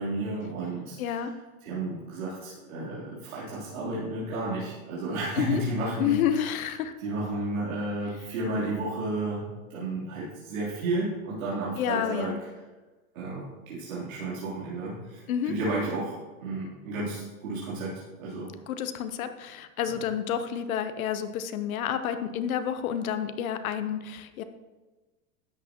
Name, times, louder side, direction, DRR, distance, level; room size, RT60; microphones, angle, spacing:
voice 1, 0.0-1.2 1.7-6.6 7.0-12.4 13.1-18.5, right 2 dB, 85° right, -8 dB, 3.5 m, -32 dB
voice 2, 1.0-1.3 5.4-5.6 6.0-6.9 11.8-12.4 15.3-15.5 18.7-24.4, left 9 dB, 85° left, 10 dB, 0.9 m, -29 dB
12.5 x 8.7 x 3.0 m, 1.2 s
supercardioid pair, 140°, 41 cm